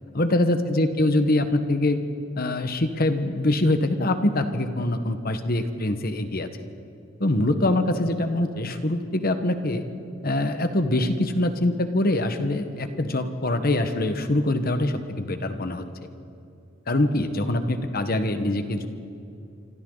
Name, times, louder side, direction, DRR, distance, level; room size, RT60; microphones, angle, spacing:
voice 1, 0.1-2.0 2.3-6.5 7.2-9.8 10.2-15.8 16.9-18.9, left 1 dB, 50° left, 8 dB, 1.4 m, -24 dB
27.5 x 25.5 x 4.0 m, 2.6 s
head